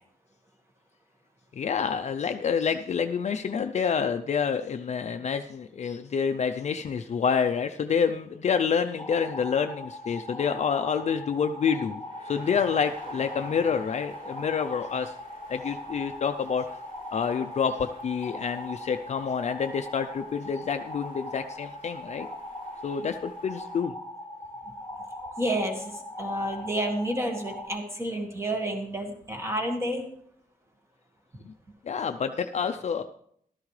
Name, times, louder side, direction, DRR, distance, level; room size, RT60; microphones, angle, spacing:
voice 1, 1.6-15.1 15.5-16.7 17.1-22.3 22.8-23.9 31.5-31.6 31.9-33.0, left 6 dB, 50° left, 7 dB, 0.5 m, -28 dB
sound 1, 9.0-27.7, left 1 dB, 25° left, 2.5 m, -40 dB
sound 2, 9.6-23.8, right 1 dB, 50° right, 6.1 m, -51 dB
voice 2, 25.4-30.0, right 1 dB, 20° right, 3 dB, 1.7 m, -30 dB
14.5 x 12.5 x 3.2 m, 0.68 s
wide cardioid pair, 175°, 15 cm